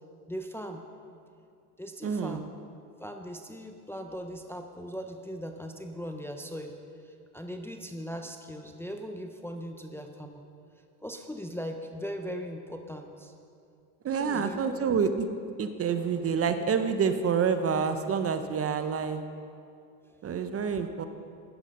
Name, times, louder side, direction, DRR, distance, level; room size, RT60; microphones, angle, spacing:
voice 1, 0.3-0.8 1.8-2.5 3.0-6.7 7.0-10.4 11.0-13.3 14.2-14.8, equal, 5° left, 4 dB, 0.7 m, -39 dB
voice 2, 2.0-2.4 14.0-15.3 15.6-19.2 20.2-21.1, right 6 dB, 30° right, 9 dB, 0.8 m, -28 dB
13.0 x 9.9 x 5.4 m, 2.4 s
supercardioid pair, 105°, 49 cm